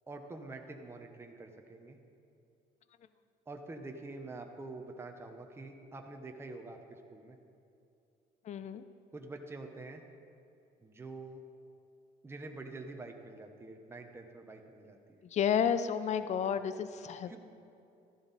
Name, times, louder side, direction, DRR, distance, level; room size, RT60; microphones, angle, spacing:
voice 1, 0.1-2.0 3.5-7.4 9.1-10.0 10.8-11.4 12.2-15.2 17.3-17.4, right 2 dB, 15° right, 3 dB, 0.9 m, -46 dB
voice 2, 8.5-8.8 15.3-17.3, left 8 dB, 45° left, 12 dB, 0.5 m, -31 dB
13.5 x 11.0 x 4.1 m, 2.6 s
cardioid pair, 110°, 17 cm